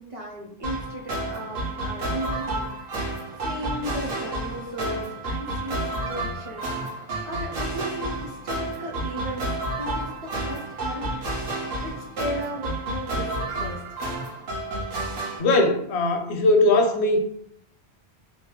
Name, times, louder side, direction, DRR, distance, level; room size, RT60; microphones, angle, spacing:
voice 1, 0.0-9.5 9.8-13.8, equal, 45° right, -1 dB, 0.5 m, -36 dB
sound 1, 0.6-15.4, right 1 dB, 60° right, 0.9 m, -30 dB
voice 2, 15.4-17.2, left 2 dB, 80° left, 5 dB, 0.8 m, -20 dB
2.7 x 2.3 x 2.9 m, 0.68 s
omnidirectional pair, 1.1 m